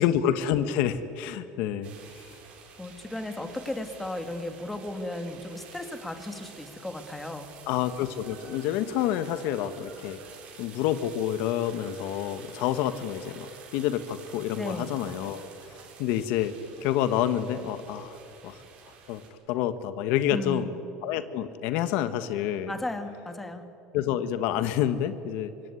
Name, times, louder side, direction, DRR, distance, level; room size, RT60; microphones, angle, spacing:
voice 1, 0.0-2.3 7.7-10.2 10.6-15.5 16.0-16.5 16.8-18.2 18.4-18.6 19.1-19.2 19.5-20.7 21.0-22.7 23.9-25.5, left 10 dB, 60° left, 12 dB, 1.3 m, -28 dB
sound 1, 1.8-19.3, right 6 dB, 40° right, 5.0 m, -49 dB
voice 2, 2.8-7.5 14.6-15.0 20.3-20.8 22.7-23.7, left 2 dB, 5° left, 7 dB, 1.9 m, -35 dB
24.5 x 24.0 x 9.8 m, 2.9 s
cardioid pair, 155°, 3 cm